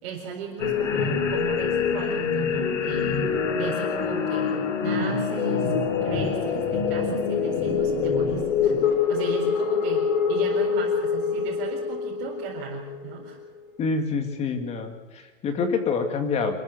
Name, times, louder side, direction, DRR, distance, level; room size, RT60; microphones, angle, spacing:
voice 1, 0.0-3.2 3.5-5.7 6.0-8.7 9.1-13.4, right 5 dB, 45° right, -2 dB, 4.4 m, -36 dB
sound 1, 0.6-13.3, left 6 dB, 70° left, 4.0 m, -25 dB
voice 2, 13.8-16.6, left 4 dB, 15° left, 7 dB, 2.1 m, -27 dB
26.5 x 13.5 x 8.2 m, 1.3 s
supercardioid pair, 165°, 38 cm